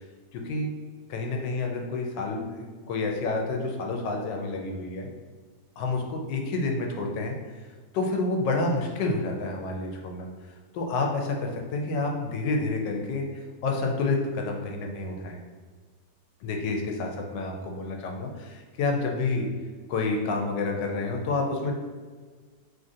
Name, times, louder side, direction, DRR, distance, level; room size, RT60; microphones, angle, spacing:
voice 1, 0.3-0.7 1.1-5.1 5.8-7.3 7.9-10.3 10.7-13.3 13.6-15.4 16.4-19.5 19.9-21.7, left 3 dB, 80° left, 2 dB, 1.2 m, -29 dB
3.1 x 2.5 x 2.6 m, 1.5 s
omnidirectional pair, 1.9 m